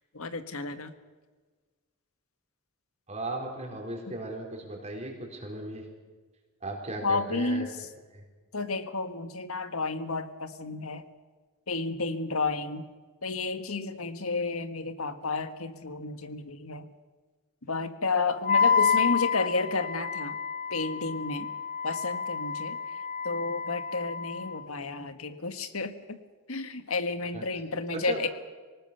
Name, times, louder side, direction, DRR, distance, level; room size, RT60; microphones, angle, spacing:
voice 1, 0.1-0.9 7.0-7.7 8.5-11.0 11.7-12.9 13.2-16.8 17.7-20.3 20.7-21.5 21.8-22.8 23.2-26.2 26.5-28.3, left 3 dB, 80° left, 10 dB, 1.6 m, -31 dB
voice 2, 3.1-5.8 6.6-7.6 8.1-8.2 27.3-27.4 27.9-28.2, right 1 dB, 30° right, 0 dB, 4.0 m, -36 dB
Wind instrument woodwind instrument, 18.4-24.6, left 6 dB, 40° left, 0.6 m, -29 dB
25.5 x 19.0 x 6.8 m, 1.4 s
head